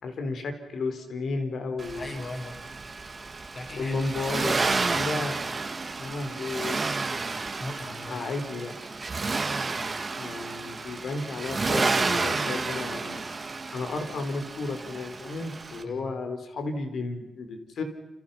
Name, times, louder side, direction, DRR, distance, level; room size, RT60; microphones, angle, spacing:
voice 1, 0.0-2.1 3.8-5.4 6.0-6.9 8.1-8.7 10.1-13.5 13.7-17.8, left 3 dB, 65° left, 6 dB, 4.5 m, -33 dB
Accelerating revving vroom, 1.8-15.8, right 3 dB, 30° right, 2.2 m, -31 dB
voice 2, 2.0-2.8 3.5-4.1 7.6-8.2 15.8-16.1, left 2 dB, 35° left, 4 dB, 5.8 m, -38 dB
30.0 x 28.0 x 5.9 m, 0.97 s
wide cardioid pair, 135°, 0 cm